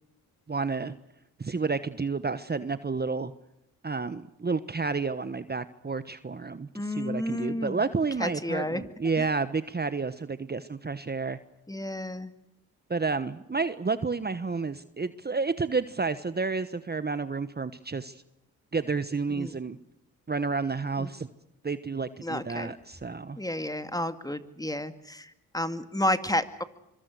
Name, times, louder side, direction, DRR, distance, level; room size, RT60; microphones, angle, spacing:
voice 1, 0.5-0.9 1.4-3.3 3.8-11.4 12.9-18.2 18.7-19.8 20.3-21.3 21.6-23.4, right 4 dB, 25° right, 13 dB, 1.2 m, -30 dB
voice 2, 6.7-7.8 8.2-8.8 9.2-9.3 11.7-12.3 19.3-19.5 21.0-21.1 22.2-22.7 23.4-26.6, left 1 dB, 10° left, 11 dB, 2.2 m, -31 dB
25.0 x 23.5 x 6.4 m, 0.85 s
supercardioid pair, 55°, 37 cm